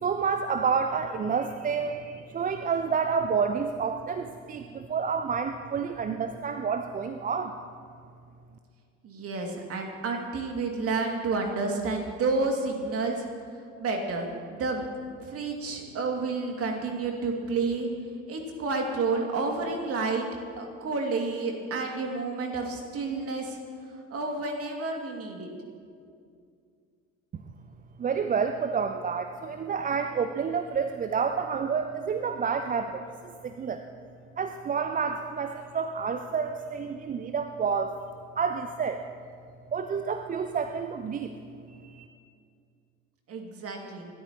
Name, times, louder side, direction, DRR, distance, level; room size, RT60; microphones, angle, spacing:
voice 1, 0.0-7.6 28.0-33.8 34.4-37.9 38.4-39.0 39.7-41.3 41.8-42.1, right 6 dB, 20° right, 8 dB, 0.6 m, -29 dB
voice 2, 9.0-13.3 13.8-14.8 15.2-17.9 18.3-20.3 20.6-23.6 24.1-25.5 43.3-44.1, right 3 dB, 35° right, 2 dB, 2.5 m, -30 dB
26.5 x 13.0 x 3.0 m, 2.3 s
figure-of-eight pair, 60°, 39 cm